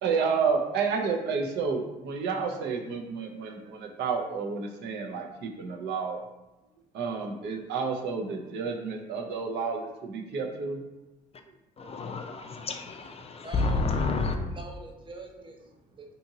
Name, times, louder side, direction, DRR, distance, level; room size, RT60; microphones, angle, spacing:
voice 1, 0.0-6.2 6.9-10.8, right 5 dB, 70° right, 0.5 m, -30 dB
voice 2, 11.8-14.4, left 3 dB, 35° left, 0.4 m, -29 dB
voice 3, 13.2-13.9 14.5-16.1, right 3 dB, 25° right, 0.6 m, -45 dB
2.7 x 2.6 x 2.7 m
supercardioid pair, 60°, 19 cm